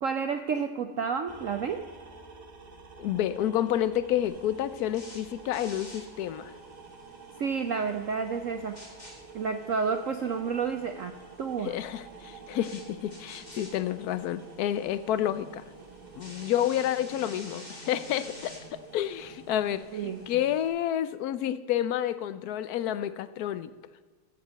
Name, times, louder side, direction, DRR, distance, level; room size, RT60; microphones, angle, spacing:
voice 1, 0.0-1.8 7.4-8.8 9.3-11.1 11.4-11.7 19.9-20.2, right 6 dB, 70° right, 7 dB, 0.7 m, -30 dB
sound 1, 1.3-20.6, right 4 dB, 30° right, 0.9 m, -49 dB
voice 2, 3.0-6.5 11.6-15.6 16.2-18.5 18.9-23.7, left 11 dB, 70° left, 14 dB, 0.9 m, -29 dB
sound 2, 4.2-20.7, left 1 dB, 20° left, 2.8 m, -51 dB
14.5 x 5.2 x 8.1 m, 1.4 s
omnidirectional pair, 2.2 m